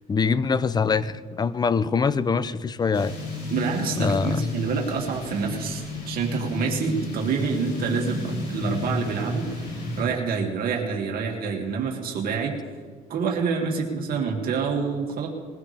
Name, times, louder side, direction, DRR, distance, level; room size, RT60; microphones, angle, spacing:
voice 1, 0.1-3.1 4.0-4.4 14.1-14.2, left 5 dB, 25° left, 16 dB, 0.6 m, -24 dB
sound 1, 2.9-10.0, left 2 dB, 80° left, 5.4 m, -31 dB
voice 2, 3.5-9.5 10.0-12.6 13.1-15.3, right 5 dB, 60° right, 0 dB, 2.5 m, -27 dB
21.5 x 15.5 x 3.5 m, 1.5 s
cardioid pair, 110°, 17 cm